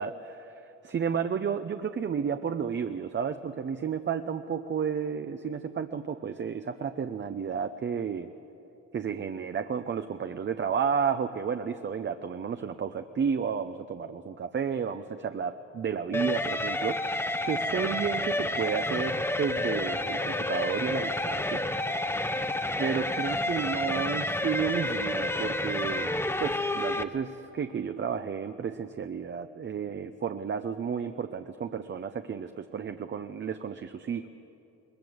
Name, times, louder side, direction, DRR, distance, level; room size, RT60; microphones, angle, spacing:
voice 1, 0.0-8.3 8.9-21.6 22.4-22.5 22.8-26.1 26.4-34.3, right 7 dB, 40° right, 8 dB, 0.7 m, -32 dB
sound 1, 16.1-27.0, left 1 dB, 10° left, 0.9 m, -30 dB
21.0 x 21.0 x 7.9 m, 3.0 s
cardioid pair, 90°, 30 cm